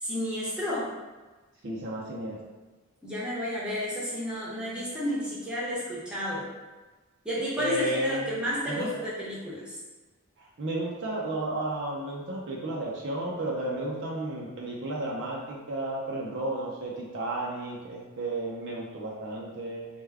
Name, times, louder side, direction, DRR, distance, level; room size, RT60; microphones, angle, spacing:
voice 1, 0.0-0.9 3.0-6.5 7.2-9.8, equal, 5° right, -8 dB, 0.8 m, -31 dB
voice 2, 1.6-2.4 7.6-8.3 8.6-8.9 10.4-19.9, right 1 dB, 55° right, -2 dB, 0.5 m, -33 dB
3.4 x 2.2 x 3.3 m, 1.3 s
head